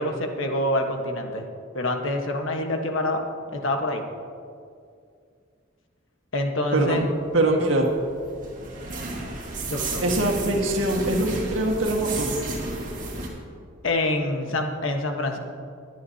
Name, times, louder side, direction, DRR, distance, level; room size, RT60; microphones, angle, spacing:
voice 1, 0.0-1.5 1.7-3.2 3.5-4.0 6.3-7.1 9.7-10.0 13.8-15.4, left 1 dB, 85° left, 4 dB, 1.3 m, -26 dB
voice 2, 6.7-7.1 7.3-7.9 10.0-12.3, right 1 dB, 85° right, 0 dB, 1.7 m, -23 dB
sound 1, 7.4-13.3, right 2 dB, 40° right, 2.2 m, -32 dB
22.5 x 9.4 x 2.8 m, 2.3 s
head